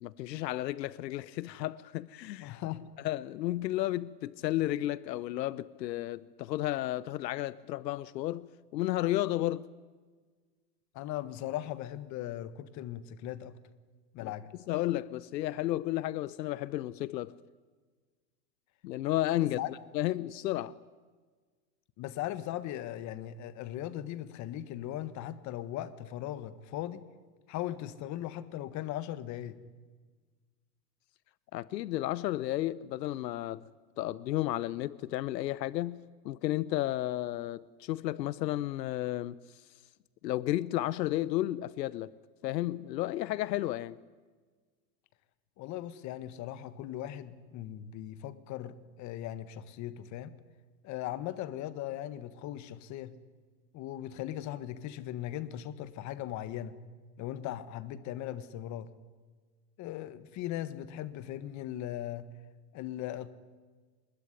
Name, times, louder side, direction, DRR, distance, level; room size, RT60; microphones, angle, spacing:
voice 1, 0.0-2.5 3.0-9.7 14.2-14.3 14.7-17.3 18.8-19.6 19.9-20.8 31.5-33.6 34.0-39.4 40.2-42.1 42.4-44.0, left 15 dB, 80° left, 1.0 m, -32 dB
voice 2, 2.4-2.9 10.9-13.6 14.1-14.5 19.6-19.7 22.0-27.0 27.5-29.6 45.6-50.3 50.8-53.1 53.7-56.8 57.2-58.9 59.8-62.3 62.7-63.3, left 12 dB, 35° left, 1.6 m, -38 dB
24.0 x 21.0 x 9.9 m
supercardioid pair, 140°, 49 cm